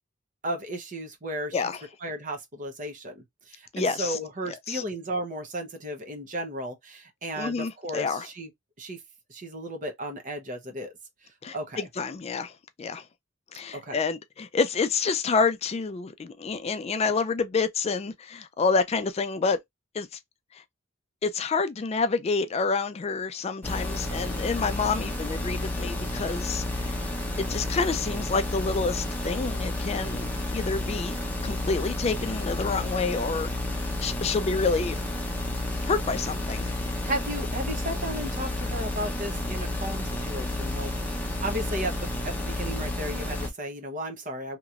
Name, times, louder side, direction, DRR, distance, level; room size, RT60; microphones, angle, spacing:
voice 1, 0.4-1.7 2.0-8.5 8.8-9.0 9.3-10.9 11.2-11.9 13.7-14.0 36.8-44.6, right 1 dB, 40° right, 0.8 m, -35 dB
voice 2, 3.7-4.2 4.7-4.8 7.4-8.3 11.4-12.5 12.8-13.0 13.5-19.6 19.9-20.1 21.2-27.0 27.4-31.2 31.4-33.5 34.0-35.0 35.8-36.7, left 4 dB, 30° left, 0.3 m, -28 dB
sound 1, 23.6-43.5, left 1 dB, 10° left, 0.8 m, -31 dB
2.9 x 2.9 x 2.4 m
head